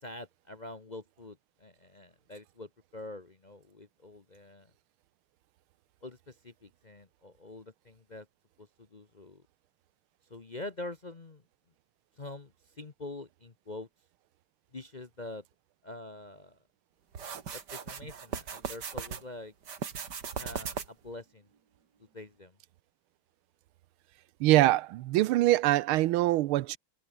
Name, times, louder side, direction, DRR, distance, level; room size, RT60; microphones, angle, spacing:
voice 1, 0.0-4.7 6.0-8.3 8.6-9.4 10.3-11.4 12.2-13.9 14.7-15.4 15.8-16.6 17.5-19.5 20.4-21.5 22.1-22.6, left 2 dB, 35° left, 0.7 m, -45 dB
sound 1, 17.1-19.2 19.6-21.1, right 6 dB, 55° right, 2.4 m, -38 dB
voice 2, 24.4-26.8, right 16 dB, 90° right, 1.5 m, -24 dB
omnidirectional pair, 2.2 m